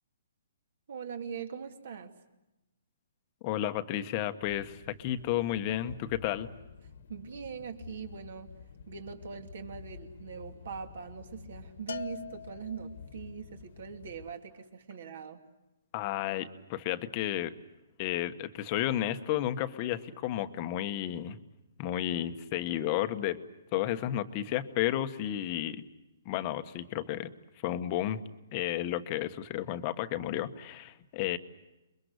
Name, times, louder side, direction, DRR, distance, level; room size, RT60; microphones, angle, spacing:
voice 1, 0.9-2.1 7.1-8.5 8.9-15.4, right 6 dB, 55° right, 6 dB, 2.8 m, -42 dB
voice 2, 3.4-6.5 15.9-17.5 18.0-21.4 21.8-23.4 23.7-25.8 26.2-27.3 27.6-28.2 28.5-31.4, left 12 dB, 25° left, 9 dB, 1.2 m, -32 dB
sound 1, 4.4-14.3, left 6 dB, 50° left, 1.6 m, -50 dB
Bell, 11.9-13.2, left 7 dB, 80° left, 1.0 m, -42 dB
30.0 x 22.5 x 8.1 m, 1.0 s
hypercardioid pair, 175°, 0 cm